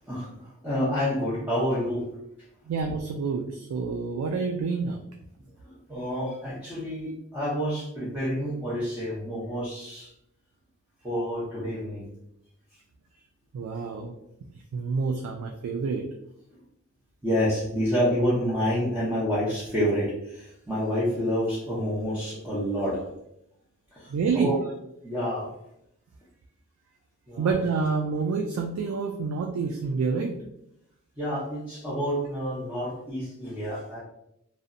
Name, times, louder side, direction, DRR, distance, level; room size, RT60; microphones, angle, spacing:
voice 1, 0.0-2.1 5.6-10.1 11.0-12.1 16.5-16.6 17.2-23.0 23.9-24.6 25.0-25.5 27.3-27.6 31.2-34.0, equal, 5° right, -10 dB, 0.6 m, -28 dB
voice 2, 2.7-5.0 13.5-14.1 14.7-16.0 24.1-24.5 27.4-30.4, right 4 dB, 80° right, 3 dB, 0.3 m, -28 dB
2.7 x 2.1 x 2.5 m, 0.79 s
head